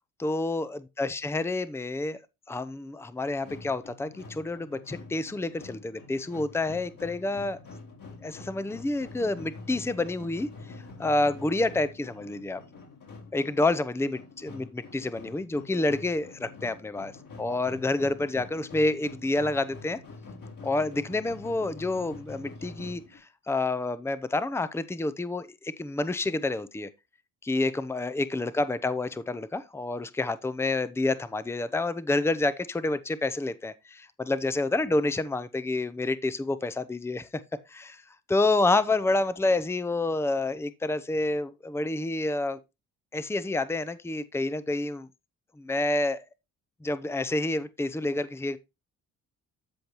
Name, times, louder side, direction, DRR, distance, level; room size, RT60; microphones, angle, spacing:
voice 1, 0.2-2.2 2.5-7.6 8.2-10.5 11.0-12.6 13.3-17.1 17.4-20.0 20.6-23.2 23.5-26.9 27.4-37.3 37.7-38.0 38.3-42.6 43.1-45.1 45.6-46.2 46.8-48.6, left 2 dB, 5° left, 0.7 m, -28 dB
sound 1, 3.2-23.2, left 3 dB, 60° left, 5.1 m, -46 dB
13.0 x 5.2 x 3.0 m
supercardioid pair, 65°, 37 cm